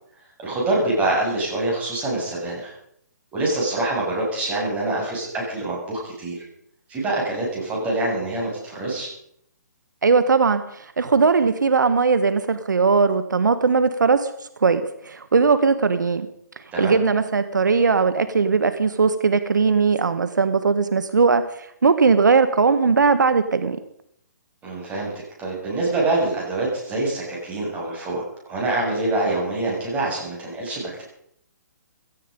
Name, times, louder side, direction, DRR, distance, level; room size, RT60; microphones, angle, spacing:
voice 1, 0.4-2.7 3.3-6.5 6.9-9.1 16.7-16.9 24.6-25.1 25.4-28.2 28.5-31.0, right 2 dB, 15° right, -3 dB, 7.6 m, -25 dB
voice 2, 10.0-14.3 14.6-16.3 16.8-21.4 21.8-23.8, right 5 dB, 85° right, 11 dB, 1.5 m, -19 dB
17.0 x 14.5 x 5.4 m, 0.70 s
hypercardioid pair, 150°, 10 cm